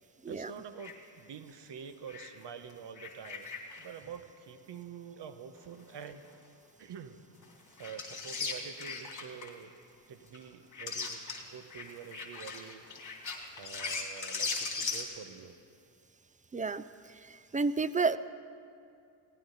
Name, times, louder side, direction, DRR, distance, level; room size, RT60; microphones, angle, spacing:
voice 1, 0.3-3.5 3.8-6.2 6.8-7.2 7.8-9.7 10.1-11.2 11.5-12.8 13.6-15.6, right 7 dB, 55° right, 10 dB, 1.1 m, -47 dB
sound 1, 0.8-0.9 2.1-2.3 2.7-3.9 7.4-7.5 7.8-9.5 10.3-10.4 10.7-11.4 11.7-15.1, left 4 dB, 35° left, 2.8 m, -38 dB
voice 2, 16.5-16.8 17.3-18.2, right 4 dB, 15° right, 15 dB, 0.4 m, -30 dB
19.5 x 17.5 x 4.1 m, 2.4 s
supercardioid pair, 75°, 49 cm